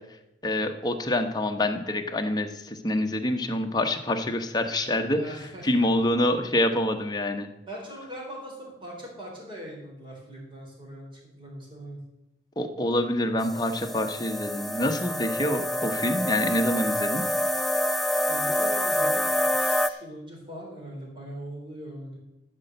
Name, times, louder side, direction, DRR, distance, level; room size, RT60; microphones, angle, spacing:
voice 1, 0.4-5.2 5.6-7.5 12.6-17.2, left 1 dB, 25° left, 5 dB, 1.0 m, -26 dB
voice 2, 5.1-6.1 7.7-12.0 18.3-22.2, right 1 dB, 30° right, -2 dB, 3.9 m, -41 dB
sound 1, 13.4-19.9, left 1 dB, ahead, 0.3 m, -27 dB
13.0 x 5.4 x 7.9 m, 0.90 s
head